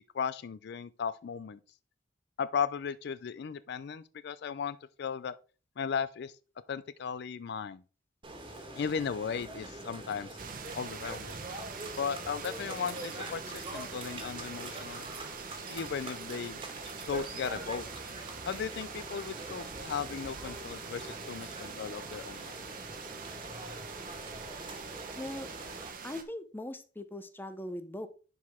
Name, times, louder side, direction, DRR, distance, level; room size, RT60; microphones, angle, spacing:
voice 1, 0.1-1.6 2.4-5.4 5.8-6.3 6.7-7.8 8.7-10.3 10.7-11.4 12.0-15.1 15.7-16.6 17.1-17.9 18.4-22.6, left 6 dB, 60° left, 0.4 m, -36 dB
sound 1, 8.2-25.9, right 1 dB, 25° right, 1.6 m, -44 dB
sound 2, 10.4-26.2, right 5 dB, 50° right, 1.0 m, -44 dB
voice 2, 25.2-25.5 26.0-28.1, left 1 dB, 10° left, 0.6 m, -40 dB
10.5 x 4.7 x 3.5 m
head